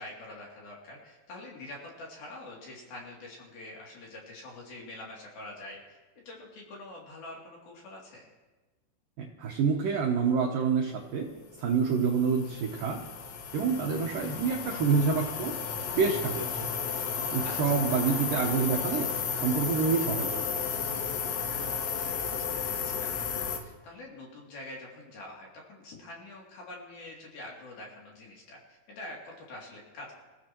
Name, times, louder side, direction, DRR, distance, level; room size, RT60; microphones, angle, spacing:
voice 1, 0.0-8.3 17.4-17.7 21.6-30.1, left 2 dB, 55° left, -3 dB, 4.3 m, -46 dB
voice 2, 9.2-11.3 11.6-13.0 13.5-15.5 15.9-16.7 17.3-19.1 19.4-20.4, right 5 dB, 90° right, 0 dB, 1.9 m, -27 dB
sound 1, 11.4-23.6, left 6 dB, 70° left, 3.2 m, -33 dB
25.5 x 15.5 x 3.0 m, 1.2 s
omnidirectional pair, 5.7 m